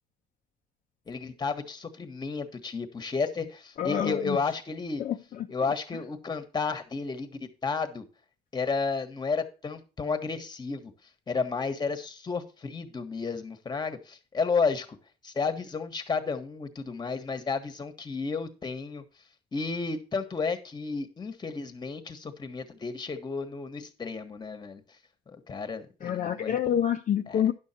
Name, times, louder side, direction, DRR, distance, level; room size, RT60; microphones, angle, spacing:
voice 1, 1.1-5.0 5.5-8.0 8.5-10.9 11.3-15.0 15.2-19.0 19.5-24.8 25.3-26.7 27.3-27.4, left 4 dB, 25° left, 1.4 m, -32 dB
voice 2, 3.8-4.4 5.0-5.5 26.0-27.5, left 9 dB, 50° left, 0.7 m, -27 dB
10.5 x 6.4 x 4.4 m
cardioid pair, 110°, 17 cm